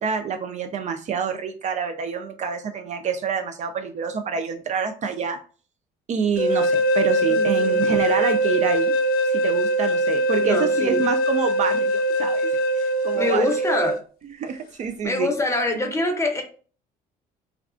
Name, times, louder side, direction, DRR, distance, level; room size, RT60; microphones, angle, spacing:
voice 1, 0.0-5.4 6.1-8.9 9.3-12.5 12.8-13.5 14.4-15.3, right 6 dB, 45° right, 7 dB, 0.4 m, -27 dB
sound 1, 6.4-14.0, right 1 dB, 60° left, 0.4 m, -22 dB
voice 2, 7.2-8.0 10.4-11.1 13.1-14.0 15.0-16.4, left 2 dB, 15° left, 3 dB, 0.7 m, -25 dB
2.3 x 2.2 x 3.6 m, 0.39 s
cardioid pair, 110°, 17 cm